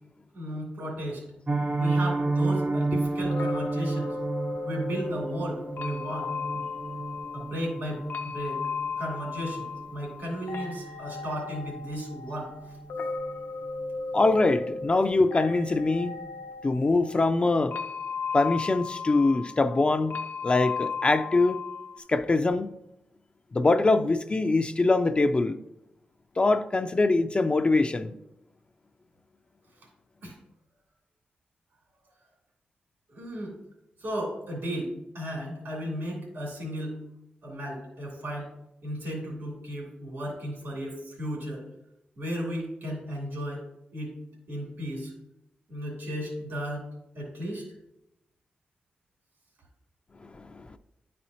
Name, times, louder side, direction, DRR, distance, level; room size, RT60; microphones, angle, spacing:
voice 1, 0.3-1.2 1.8-4.2 4.6-6.7 7.3-8.6 9.0-12.8 30.2-30.4 33.1-33.6 34.0-37.0 37.4-38.5 38.8-41.7 42.2-43.6 43.9-44.2 44.5-45.1 45.7-46.9 47.1-47.6, equal, 85° right, 2.7 m, -35 dB
Piano, 1.5-12.4 12.6-12.8 13.2-13.3 13.7-13.9 14.2-14.3, right 3 dB, 45° right, 0.6 m, -31 dB
sound 1, 3.3-22.0, left 4 dB, 75° left, 0.6 m, -36 dB
voice 2, 14.1-16.2 16.6-17.8 18.3-20.2 20.4-21.6 22.1-22.7 23.5-25.6 26.4-28.1 50.3-50.8, left 3 dB, 35° left, 0.3 m, -23 dB
10.5 x 4.2 x 2.8 m
cardioid pair, 70°, 3 cm